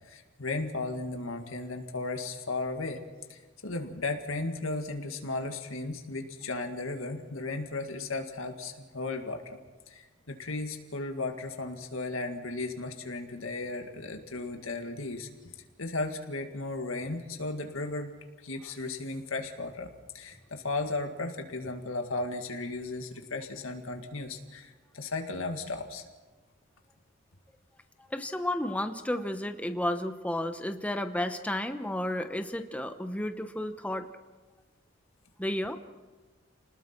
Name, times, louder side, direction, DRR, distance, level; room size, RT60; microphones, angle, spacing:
voice 1, 0.1-3.0 3.3-9.6 9.9-15.3 15.8-18.1 18.4-26.0, left 3 dB, 85° left, 4 dB, 2.0 m, -35 dB
voice 2, 28.1-34.1 35.4-35.8, left 1 dB, 5° left, 7 dB, 0.9 m, -32 dB
29.5 x 20.0 x 4.5 m, 1.3 s
head